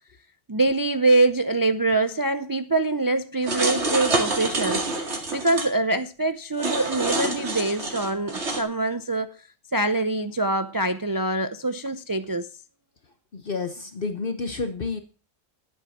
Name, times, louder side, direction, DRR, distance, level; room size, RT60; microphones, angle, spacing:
voice 1, 0.5-9.5 9.7-12.5, right 2 dB, 30° right, 0.4 m, -24 dB
sound 1, 3.4-5.7 6.6-8.6, right 2 dB, 80° right, 2.6 m, -27 dB
voice 2, 13.3-15.0, left 4 dB, 55° left, 1.1 m, -30 dB
11.5 x 7.2 x 7.1 m
omnidirectional pair, 1.1 m